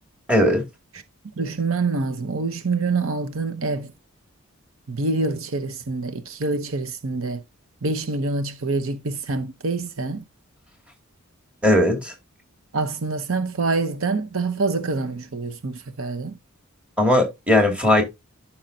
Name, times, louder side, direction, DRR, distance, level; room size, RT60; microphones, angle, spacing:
voice 1, 0.3-0.6 11.6-12.1 17.0-18.0, left 1 dB, 5° right, 2.3 m, -18 dB
voice 2, 1.4-3.9 4.9-7.4 7.8-10.2 12.7-16.4, right 3 dB, 65° right, 0.9 m, -26 dB
11.5 x 5.7 x 2.7 m
head